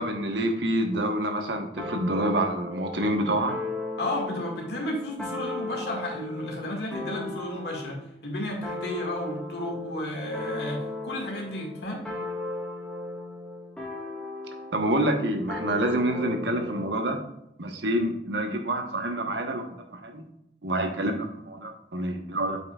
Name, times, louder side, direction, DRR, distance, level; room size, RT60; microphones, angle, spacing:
voice 1, 0.0-3.6 14.7-17.2 17.6-20.3 20.6-22.6, right 1 dB, 85° right, 4 dB, 1.1 m, -27 dB
sound 1, 1.8-8.0 8.6-14.9 15.5-16.9, left 2 dB, 5° left, 1.4 m, -36 dB
voice 2, 4.0-12.0, left 1 dB, 70° left, -1 dB, 1.9 m, -33 dB
7.8 x 5.7 x 2.4 m, 0.82 s
head